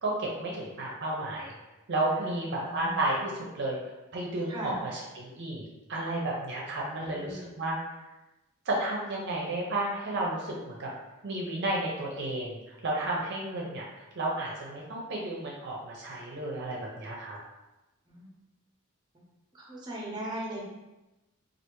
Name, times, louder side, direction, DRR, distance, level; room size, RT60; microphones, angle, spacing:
voice 1, 0.0-1.5 1.9-3.8 4.1-7.8 8.7-10.9 11.2-17.4, right 2 dB, 55° right, -3 dB, 0.6 m, -32 dB
voice 2, 2.1-3.1 4.5-4.8 6.7-7.5 18.1-18.3 19.5-20.6, right 1 dB, 20° right, -4 dB, 0.7 m, -39 dB
3.3 x 2.4 x 3.0 m, 1.0 s
head